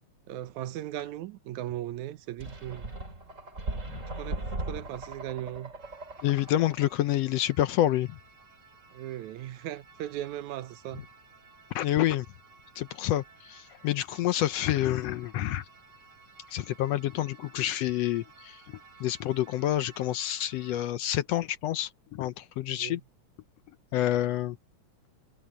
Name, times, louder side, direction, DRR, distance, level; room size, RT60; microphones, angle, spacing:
voice 1, 0.3-2.9 4.2-5.7 8.9-11.1 22.7-23.0, right 13 dB, 85° right, 2.2 m, -38 dB
sound 1, 2.4-6.9, right 2 dB, 25° right, 3.3 m, -38 dB
sound 2, 5.8-20.9, right 4 dB, 45° right, 4.2 m, -56 dB
voice 2, 6.2-8.2 11.7-12.3 12.8-15.6 16.5-18.6 19.0-23.0 23.9-24.6, left 13 dB, 75° left, 1.6 m, -28 dB
omnidirectional pair, 3.3 m